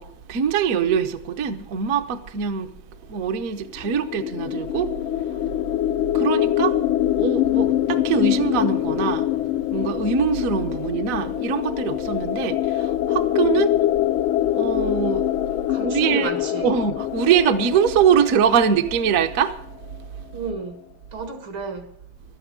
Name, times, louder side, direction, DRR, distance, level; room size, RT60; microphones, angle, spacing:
voice 1, 0.0-2.7 3.1-5.7 6.1-6.8 7.2-9.3 9.7-13.7 14.5-16.3 16.6-19.6, right 7 dB, 55° right, 1.0 m, -23 dB
sound 1, 3.8-19.5, left 13 dB, 85° left, 1.6 m, -24 dB
voice 2, 15.7-16.7 20.3-20.8 21.1-22.0, right 4 dB, 75° right, 2.6 m, -32 dB
13.0 x 9.7 x 6.9 m
omnidirectional pair, 2.2 m